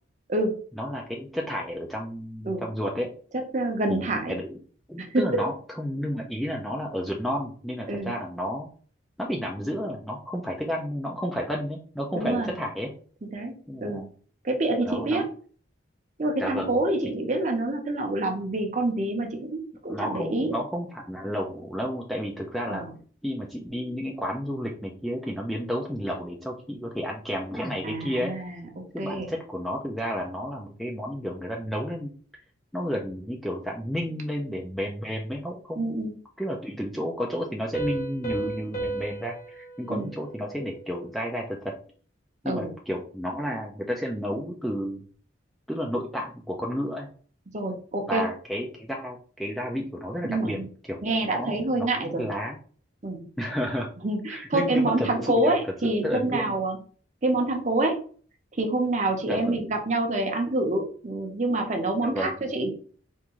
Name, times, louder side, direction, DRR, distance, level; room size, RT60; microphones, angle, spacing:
voice 1, 0.8-3.1 3.9-4.6 4.9-8.7 9.2-12.9 13.7-14.1 14.9-15.2 16.4-16.8 19.9-22.8 23.2-28.3 28.9-32.1 32.7-35.9 36.4-41.7 42.4-45.0 45.7-47.1 48.1-50.6 50.9-51.0 51.3-52.6 53.4-53.9 54.3-55.6 56.0-56.4 59.3-59.7 62.0-62.3, equal, ahead, -1 dB, 0.3 m, -31 dB
voice 2, 3.3-4.4 5.0-5.4 7.9-8.1 12.1-12.5 13.3-13.5 13.8-14.0 14.4-15.3 16.2-20.5 22.7-22.9 27.8-28.7 29.0-29.3 35.8-36.1 39.9-40.1 42.5-42.7 47.5-48.2 50.2-50.7 51.0-52.3 53.0-53.2 54.0-56.8 57.2-58.0 58.6-62.7, right 2 dB, 40° right, 3 dB, 0.7 m, -27 dB
Piano, 37.7-41.2, right 2 dB, 35° left, 1.0 m, -35 dB
3.5 x 2.5 x 2.9 m, 0.43 s
head